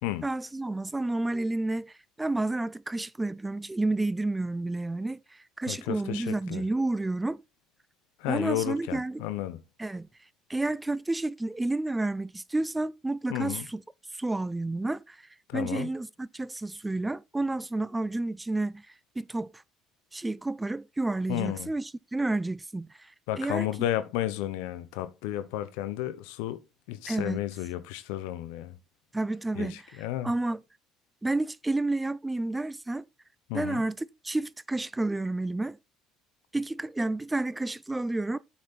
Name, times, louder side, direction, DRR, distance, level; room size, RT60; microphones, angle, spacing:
voice 1, 0.2-7.4 8.3-9.2 9.8-10.1 10.5-13.8 14.1-18.9 19.2-19.6 20.1-23.7 27.1-27.4 29.1-29.8 30.2-30.6 31.2-33.1 33.5-35.8 36.5-38.4, right 2 dB, 15° right, 0.6 m, -30 dB
voice 2, 5.7-6.6 8.2-9.6 13.3-13.7 15.5-15.9 21.3-21.7 23.3-28.8 29.5-30.3 33.5-33.8, left 13 dB, 80° left, 0.9 m, -32 dB
8.2 x 6.1 x 4.2 m
hypercardioid pair, 70°, 0 cm